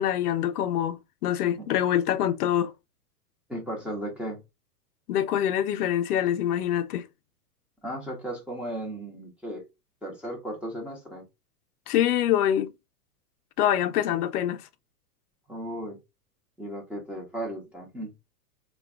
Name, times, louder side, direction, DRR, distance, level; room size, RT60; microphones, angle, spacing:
voice 1, 0.0-2.7 5.1-7.1 11.9-12.7 13.6-14.7, left 11 dB, 70° left, 0.5 m, -25 dB
voice 2, 3.5-4.4 7.8-9.6 10.0-11.2 15.5-16.0 16.6-18.1, right 1 dB, 5° right, 0.4 m, -35 dB
2.2 x 2.2 x 3.4 m
hypercardioid pair, 120°, 47 cm